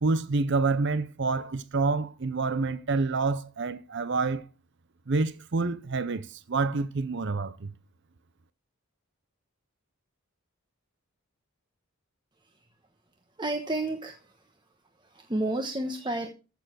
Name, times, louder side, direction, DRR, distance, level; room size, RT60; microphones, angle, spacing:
voice 1, 0.0-4.4 5.1-7.7, right 3 dB, 50° right, 0.7 m, -28 dB
voice 2, 13.4-14.4 15.0-16.3, right 1 dB, 20° right, 1.2 m, -31 dB
15.0 x 7.0 x 6.2 m
head